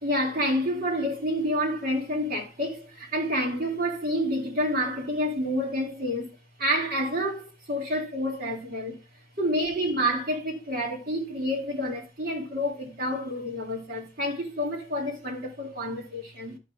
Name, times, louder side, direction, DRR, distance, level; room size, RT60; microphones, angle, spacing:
voice 1, 0.0-9.0 9.4-16.6, equal, 55° right, 2.3 m, -29 dB
11.0 x 6.5 x 2.4 m
head